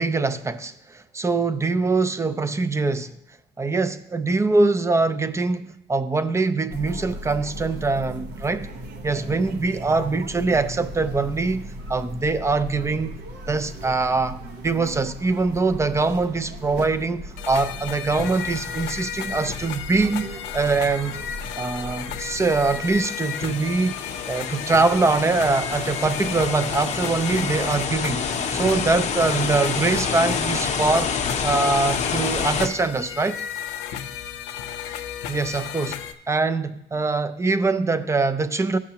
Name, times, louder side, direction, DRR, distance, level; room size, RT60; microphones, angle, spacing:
voice 1, 0.0-3.1 3.6-8.7 9.0-21.2 21.6-31.1 31.4-33.4 35.3-36.0 36.3-38.8, right 3 dB, 15° right, 13 dB, 0.4 m, -23 dB
sound 1, 6.7-23.0, right 1 dB, 70° right, 1.0 m, -37 dB
sound 2, 17.4-36.1, left 9 dB, 90° left, 0.6 m, -34 dB
sound 3, 22.4-32.7, left 6 dB, 40° left, 0.7 m, -28 dB
14.0 x 6.0 x 2.9 m, 0.79 s
cardioid pair, 110°, 17 cm